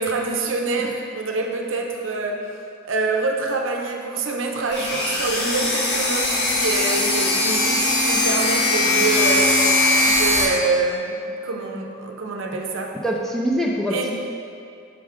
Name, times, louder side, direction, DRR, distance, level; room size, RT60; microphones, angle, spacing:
voice 1, 0.0-2.6 2.8-9.7 10.0-13.0 13.9-14.1, right 3 dB, 60° right, 1 dB, 0.6 m, -26 dB
sound 1, 4.7-10.4, left 2 dB, 50° left, 0.9 m, -20 dB
voice 2, 13.0-14.1, equal, ahead, -2 dB, 0.4 m, -24 dB
6.1 x 4.7 x 3.6 m, 2.5 s
head